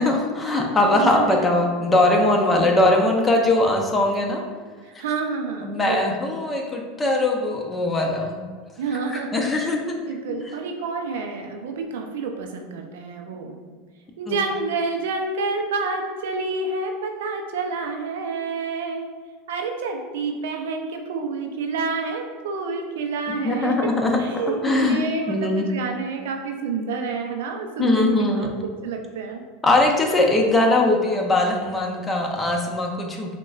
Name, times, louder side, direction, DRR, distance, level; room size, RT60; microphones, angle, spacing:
voice 1, 0.0-4.4 5.6-8.4 9.1-9.9 10.3-10.4 14.3-14.4 23.4-24.2 24.6-25.0 25.3-25.7 27.8-28.5 29.6-33.3, left 2 dB, 15° left, 0 dB, 0.7 m, -21 dB
voice 2, 0.9-1.5 4.8-6.3 8.8-9.8 10.1-13.6 14.2-19.1 19.5-23.9 24.1-29.4, right 4 dB, 75° right, 3 dB, 0.4 m, -29 dB
5.9 x 2.2 x 2.4 m, 1.5 s
hypercardioid pair, 90°, 0 cm